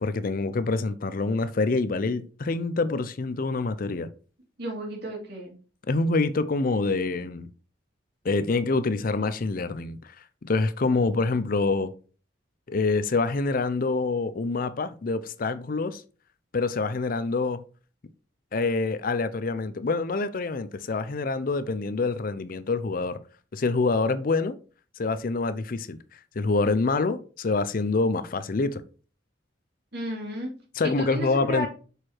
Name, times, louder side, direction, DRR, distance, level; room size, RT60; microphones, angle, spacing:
voice 1, 0.0-4.1 5.9-7.5 8.2-10.1 10.4-11.9 12.7-16.0 16.5-17.6 18.5-23.2 23.5-24.6 25.0-26.0 26.4-28.8 30.8-31.7, left 3 dB, 45° left, 0.5 m, -26 dB
voice 2, 4.6-5.5 29.9-30.5 30.8-31.7, equal, 55° right, 2.8 m, -32 dB
6.6 x 4.7 x 4.4 m
head